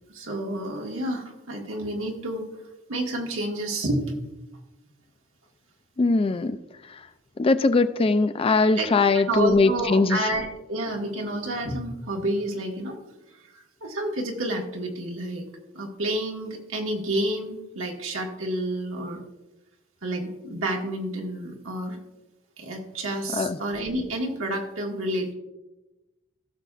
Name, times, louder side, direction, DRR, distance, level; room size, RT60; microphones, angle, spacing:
voice 1, 0.1-2.5 2.9-4.2 8.7-8.9 9.1-12.9 13.5-15.5 15.7-19.2 20.0-22.0 22.6-25.3, right 1 dB, 90° right, 0 dB, 1.7 m, -29 dB
voice 2, 6.0-6.6 6.9-7.0 7.4-10.3 23.3-23.6, left 3 dB, 30° left, 11 dB, 0.4 m, -21 dB
16.5 x 6.8 x 2.5 m, 1.0 s
head